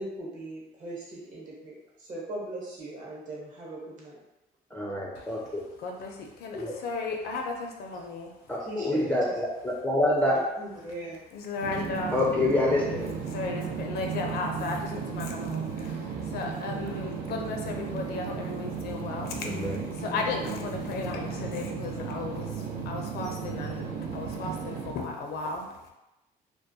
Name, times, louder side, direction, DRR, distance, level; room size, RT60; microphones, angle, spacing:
voice 1, 0.0-4.2 8.6-9.3 10.3-11.2, right 1 dB, 50° right, -4 dB, 1.0 m, -39 dB
voice 2, 4.7-5.6 6.5-6.7 8.5-10.4 12.1-13.1 19.4-19.8, left 1 dB, 10° left, -4 dB, 0.3 m, -26 dB
voice 3, 5.8-8.3 11.3-12.2 13.3-25.9, left 3 dB, 70° left, 2 dB, 0.5 m, -35 dB
sound 1, 11.6-24.9, right 5 dB, 70° right, 0.4 m, -35 dB
2.2 x 2.1 x 2.7 m, 0.96 s
cardioid pair, 110°, 17 cm